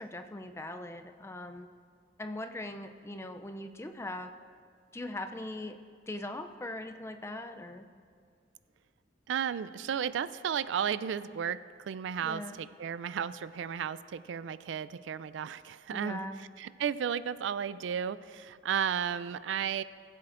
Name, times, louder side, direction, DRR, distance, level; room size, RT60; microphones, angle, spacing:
voice 1, 0.0-1.7 2.2-4.3 4.9-5.8 6.1-7.8 12.2-12.6 15.9-16.4, left 1 dB, 15° left, 7 dB, 0.4 m, -40 dB
voice 2, 9.3-16.2 16.6-19.8, right 8 dB, 85° right, 16 dB, 0.3 m, -34 dB
21.0 x 7.5 x 2.5 m, 2.2 s
head